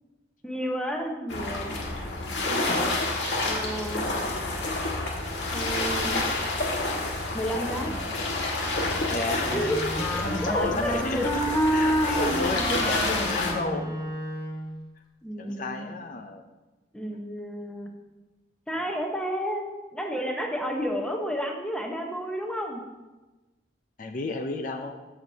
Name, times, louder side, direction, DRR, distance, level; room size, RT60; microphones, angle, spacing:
voice 1, 0.4-1.8 3.4-4.1 5.5-6.3 7.3-7.9 9.5-11.3 12.2-12.3 15.2-15.9 16.9-17.9 18.7-22.8, equal, 5° left, 1 dB, 0.9 m, -31 dB
sound 1, 1.3-13.5, left 2 dB, 80° left, 1.7 m, -29 dB
voice 2, 7.8-8.3 9.1-9.7 10.2-11.3 11.7-14.0 15.4-16.4 24.0-25.0, left 3 dB, 45° left, 5 dB, 0.5 m, -32 dB
Wind instrument woodwind instrument, 9.4-14.8, equal, 25° left, 1.4 m, -29 dB
13.5 x 7.0 x 2.8 m, 1.2 s
head